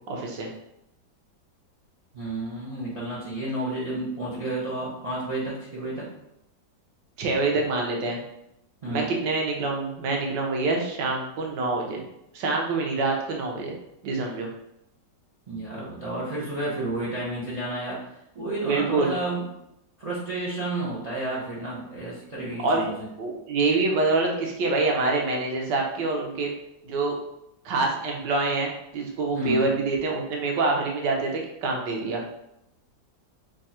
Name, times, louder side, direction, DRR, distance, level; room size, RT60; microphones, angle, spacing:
voice 1, 0.1-0.5 7.2-8.2 8.9-12.0 12.3-13.8 14.0-14.5 18.6-19.1 22.6-22.9 23.2-26.5 26.8-27.2 27.6-32.2, right 3 dB, 80° right, 0 dB, 1.4 m, -26 dB
voice 2, 2.1-6.1 8.8-9.1 15.5-19.5 20.0-23.1 29.3-29.7, right 2 dB, 65° right, -6 dB, 0.3 m, -31 dB
3.4 x 2.4 x 4.1 m, 0.83 s
omnidirectional pair, 1.9 m